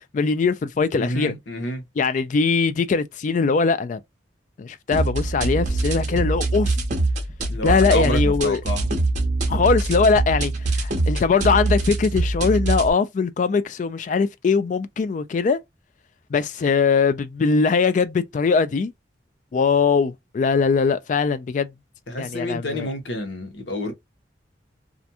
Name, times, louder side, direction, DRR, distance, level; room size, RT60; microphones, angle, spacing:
voice 1, 0.1-1.3 2.0-4.0 4.6-6.8 7.6-8.6 9.5-15.6 16.3-18.9 19.5-21.7 22.2-22.9, left 5 dB, 45° left, 0.3 m, -21 dB
voice 2, 0.9-1.8 7.5-8.9 22.1-23.9, left 1 dB, 85° left, 0.9 m, -28 dB
sound 1, 4.9-12.9, right 2 dB, 40° right, 0.7 m, -23 dB
2.5 x 2.2 x 2.7 m
head